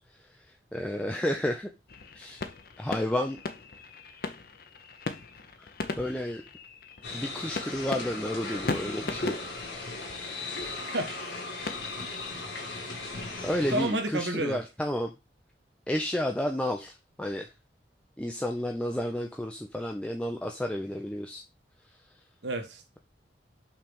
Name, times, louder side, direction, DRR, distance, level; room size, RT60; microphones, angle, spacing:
voice 1, 0.7-1.7 2.1-2.5 2.8-3.4 6.0-6.4 7.1-9.3 13.4-15.1 15.9-17.5 18.2-21.4, left 1 dB, 5° left, 0.5 m, -31 dB
sound 1, 1.9-12.2, left 3 dB, 55° left, 0.7 m, -39 dB
sound 2, 7.0-13.9, left 2 dB, 80° left, 2.2 m, -37 dB
voice 2, 10.8-11.4 13.7-14.6 22.4-23.0, right 1 dB, 75° right, 1.2 m, -31 dB
5.7 x 3.3 x 5.3 m
head